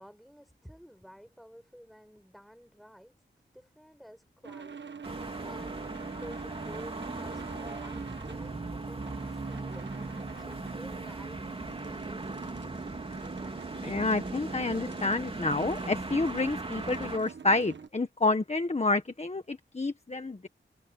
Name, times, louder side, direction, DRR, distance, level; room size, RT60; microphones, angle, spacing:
voice 1, 0.0-3.2 3.5-12.9, equal, ahead, 7.0 m, -51 dB
sound 1, 4.4-17.9, right 6 dB, 65° right, 1.4 m, -44 dB
sound 2, 5.0-17.2, right 2 dB, 30° right, 2.9 m, -39 dB
voice 2, 13.8-20.5, left 3 dB, 35° left, 1.6 m, -29 dB
wide cardioid pair, 85°, 20 cm